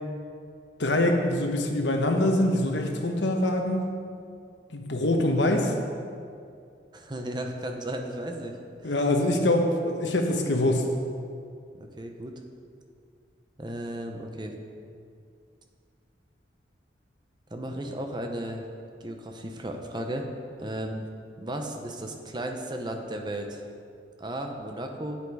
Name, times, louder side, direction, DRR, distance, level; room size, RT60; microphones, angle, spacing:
voice 1, 0.8-3.8 4.7-5.7 8.8-10.9, left 1 dB, 80° left, 3 dB, 1.1 m, -24 dB
voice 2, 6.9-8.5 8.8-8.9 11.8-12.4 13.6-14.5 17.5-18.6 19.0-20.3 20.6-21.1 21.4-23.6 24.2-25.2, right 1 dB, 25° right, 3 dB, 0.8 m, -34 dB
8.6 x 8.2 x 4.7 m, 2.4 s
head